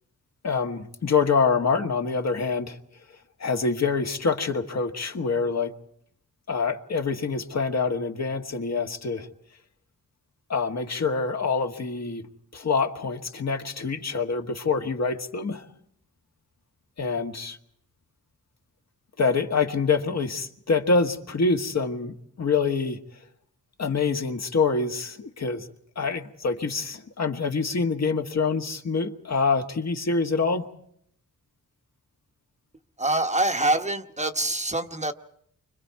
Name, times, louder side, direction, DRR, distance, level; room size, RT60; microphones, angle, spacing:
voice 1, 0.4-2.8 3.4-5.7 6.5-9.3 10.5-12.3 12.5-15.7 17.0-17.6 19.2-23.0 23.8-25.7 25.9-30.7, left 4 dB, 55° left, 4 dB, 1.6 m, -26 dB
voice 2, 33.0-35.1, right 2 dB, 20° right, 6 dB, 1.0 m, -25 dB
30.0 x 25.0 x 4.7 m, 0.69 s
cardioid pair, 75°, 33 cm